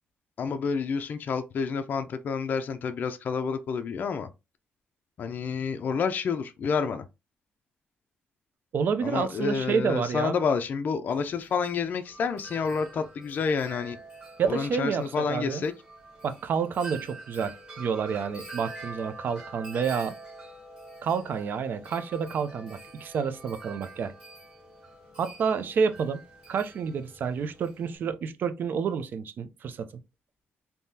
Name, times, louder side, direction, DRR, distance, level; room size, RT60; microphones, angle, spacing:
voice 1, 0.4-4.3 5.2-7.0 9.0-14.0 14.5-15.7, left 5 dB, 45° left, 0.4 m, -29 dB
voice 2, 8.7-10.4 14.4-15.6 16.2-20.2 21.0-24.1 25.2-26.2 26.5-29.9, right 6 dB, 55° right, 0.5 m, -29 dB
Wind chime, 11.1-28.0, right 2 dB, 25° right, 1.6 m, -46 dB
3.6 x 2.7 x 2.7 m
cardioid pair, 150°, 4 cm